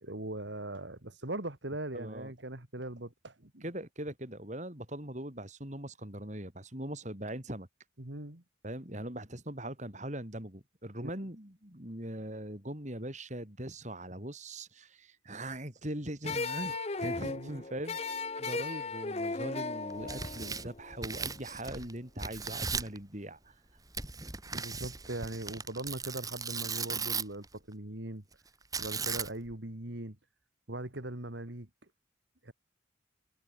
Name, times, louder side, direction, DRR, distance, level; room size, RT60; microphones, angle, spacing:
voice 1, 0.0-3.7 8.0-8.4 11.0-11.1 17.2-17.6 24.5-28.2 28.8-30.2 30.7-31.7 32.4-32.5, right 1 dB, 65° right, 2.4 m, -40 dB
voice 2, 1.9-2.3 3.6-7.7 8.6-18.0 18.4-23.6, right 1 dB, 35° right, 4.7 m, -41 dB
sound 1, 16.2-21.3, left 3 dB, 30° left, 0.9 m, -36 dB
Tearing, 19.9-21.9 22.2-23.0 23.9-27.4 28.7-29.5, right 5 dB, 20° right, 4.4 m, -37 dB
head